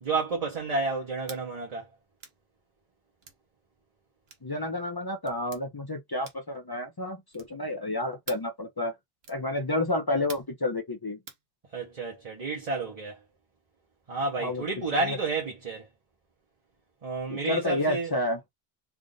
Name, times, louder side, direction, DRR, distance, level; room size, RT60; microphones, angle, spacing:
voice 1, 0.0-1.9 11.7-13.2 14.1-15.9 17.0-18.1, right 3 dB, 40° right, 0.9 m, -30 dB
sound 1, 1.2-1.5 2.2-2.4 3.2-3.4 4.3-4.5 5.2-5.6 6.2-6.6 7.3-7.6 8.3-8.5 9.2-9.5 10.3-10.6 11.3-11.4, right 5 dB, 75° right, 1.1 m, -46 dB
voice 2, 4.4-8.9 9.3-11.2 14.4-14.6 15.0-15.2 17.3-18.4, left 1 dB, 30° left, 0.4 m, -30 dB
3.4 x 2.5 x 3.8 m
omnidirectional pair, 1.0 m